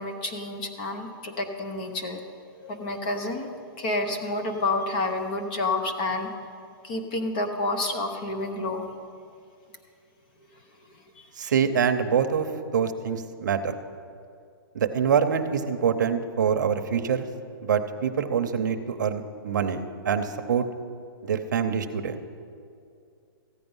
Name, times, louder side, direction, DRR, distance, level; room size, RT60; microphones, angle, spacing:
voice 1, 0.0-2.2 2.6-6.3 6.8-8.9 11.2-11.3, left 2 dB, 20° left, 6 dB, 0.6 m, -29 dB
voice 2, 11.4-12.5 12.7-13.7 14.7-17.3 17.6-20.6 21.3-22.2, right 7 dB, 50° right, 7 dB, 0.8 m, -25 dB
14.5 x 8.9 x 5.5 m, 2.4 s
hypercardioid pair, 180°, 13 cm